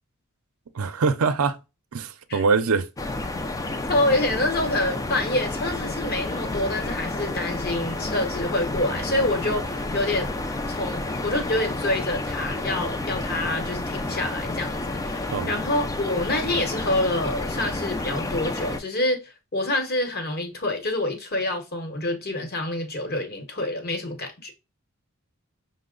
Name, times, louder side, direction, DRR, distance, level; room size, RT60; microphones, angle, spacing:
voice 1, 0.7-1.6 1.9-2.9 15.3-15.5, right 4 dB, 80° right, 0.5 m, -23 dB
sound 1, 3.0-18.8, left 2 dB, 15° left, 0.4 m, -30 dB
voice 2, 3.9-10.3 10.7-24.5, left 2 dB, 45° left, 1.0 m, -27 dB
5.6 x 2.0 x 3.7 m
head